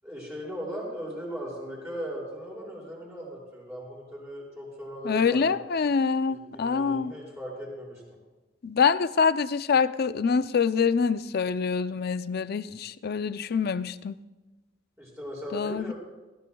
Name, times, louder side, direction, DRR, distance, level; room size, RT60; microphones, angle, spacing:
voice 1, 0.0-5.4 6.3-8.0 15.0-15.9, equal, 15° right, -6 dB, 6.0 m, -38 dB
voice 2, 5.0-7.1 8.6-14.1 15.5-15.9, left 5 dB, 55° left, 13 dB, 0.5 m, -25 dB
22.5 x 17.5 x 2.3 m, 1.2 s
head